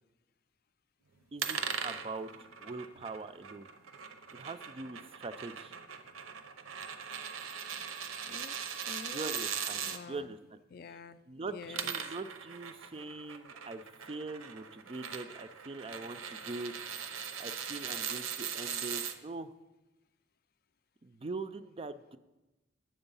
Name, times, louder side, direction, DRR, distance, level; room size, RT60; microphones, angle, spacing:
voice 1, 1.3-2.3 2.6-3.7 4.3-5.7 9.1-9.8 10.1-10.6 11.3-16.7 17.4-19.5 21.0-22.2, right 3 dB, 30° right, 12 dB, 0.3 m, -42 dB
sound 1, 1.4-10.0 11.5-19.1, right 7 dB, 85° right, 0.7 m, -40 dB
voice 2, 8.2-9.5 9.8-10.4 10.7-12.1, left 5 dB, 45° left, 13 dB, 0.4 m, -48 dB
8.9 x 7.7 x 5.4 m, 1.1 s
head